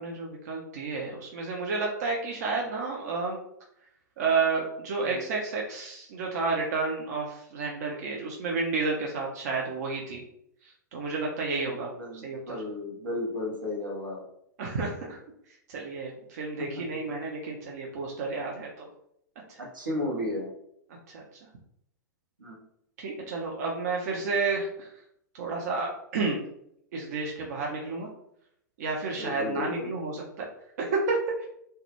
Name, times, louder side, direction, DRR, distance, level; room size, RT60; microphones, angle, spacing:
voice 1, 0.0-3.4 4.2-10.2 10.6-11.9 12.2-12.6 14.6-15.2 15.7-18.9 21.1-21.2 23.0-24.9 25.3-26.4 26.9-28.1 28.8-30.5 30.8-31.5, right 4 dB, 55° right, -1 dB, 0.4 m, -31 dB
voice 2, 11.7-14.2 19.6-20.5 22.4-22.6 29.1-29.9, left 1 dB, 80° right, -1 dB, 0.7 m, -34 dB
2.2 x 2.1 x 2.9 m, 0.75 s
figure-of-eight pair, 105°, 11 cm